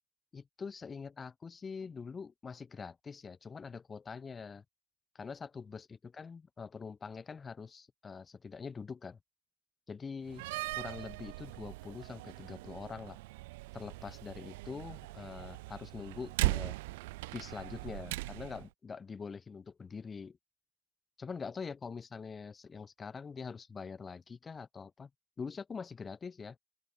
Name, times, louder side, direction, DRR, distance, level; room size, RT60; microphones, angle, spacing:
voice 1, 0.3-4.6 5.1-9.2 9.9-10.4 10.7-13.2 13.7-16.8 17.3-20.4 21.2-25.1 25.4-26.6, left 5 dB, 25° left, 0.8 m, -44 dB
Slam, 10.3-18.7, right 22 dB, 70° right, 0.8 m, -39 dB
open air
hypercardioid pair, 90°, 0 cm